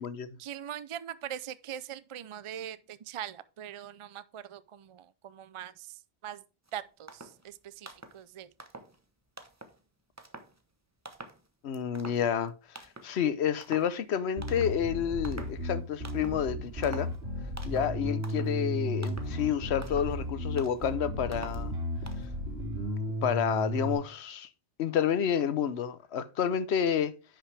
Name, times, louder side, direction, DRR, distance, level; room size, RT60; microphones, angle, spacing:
voice 1, 0.4-6.4 6.7-8.5, right 10 dB, 60° right, 0.3 m, -42 dB
sound 1, 6.7-6.8 7.1-7.5 7.8-8.2 8.6-9.0 9.4-9.8 10.2-10.6 11.1-11.5 11.7-12.5 12.8-13.2 13.6-14.0 14.4-14.9 15.2-15.6 16.0-16.4 16.8-17.2 17.6-18.0 18.2-18.6 19.0-19.4 19.8-20.2 20.6-20.9 21.3-21.7 22.1-22.3, right 2 dB, 15° right, 0.8 m, -47 dB
voice 2, 11.6-12.5 13.0-17.1 17.6-21.7 23.2-24.5 24.8-27.1, left 8 dB, 85° left, 1.0 m, -29 dB
Bass guitar, 14.4-24.0, equal, 80° right, 3.2 m, -34 dB
10.0 x 5.9 x 3.3 m
omnidirectional pair, 1.1 m